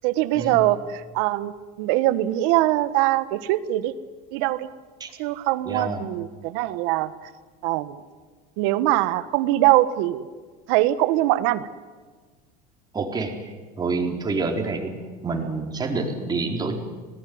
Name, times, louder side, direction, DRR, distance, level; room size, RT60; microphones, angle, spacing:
voice 1, 0.0-3.9 4.3-4.7 5.2-7.3 7.6-8.0 8.6-10.2 10.7-11.7, right 15 dB, 75° right, 14 dB, 1.5 m, -22 dB
voice 2, 5.6-6.0 12.9-16.8, right 3 dB, 20° right, 2 dB, 4.3 m, -28 dB
26.5 x 19.0 x 9.6 m, 1.4 s
cardioid pair, 135°, 19 cm